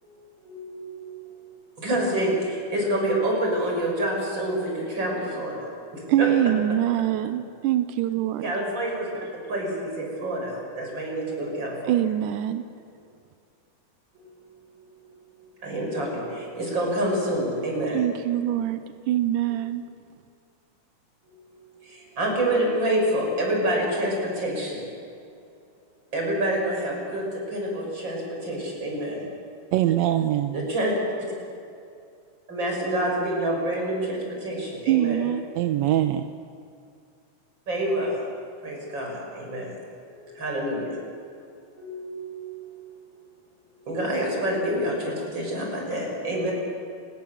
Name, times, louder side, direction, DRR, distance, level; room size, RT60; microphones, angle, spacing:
voice 1, 0.0-1.3 1.8-5.7 5.9-6.3 8.4-9.2 9.5-12.0 14.1-14.9 15.5-18.0 19.5-19.6 21.2-25.1 26.1-29.3 30.5-30.9 32.5-35.3 37.7-38.2 38.6-39.8 40.1-41.0 41.7-42.7 43.9-46.5, right 1 dB, 35° right, -1 dB, 7.3 m, -28 dB
voice 2, 6.1-8.5 11.9-12.6 17.9-18.8 19.1-19.9 34.9-35.4, right 12 dB, 90° right, 10 dB, 2.4 m, -24 dB
voice 3, 29.7-30.6 35.6-36.3, right 13 dB, 70° right, 8 dB, 1.8 m, -22 dB
30.0 x 19.5 x 7.3 m, 2.4 s
omnidirectional pair, 3.5 m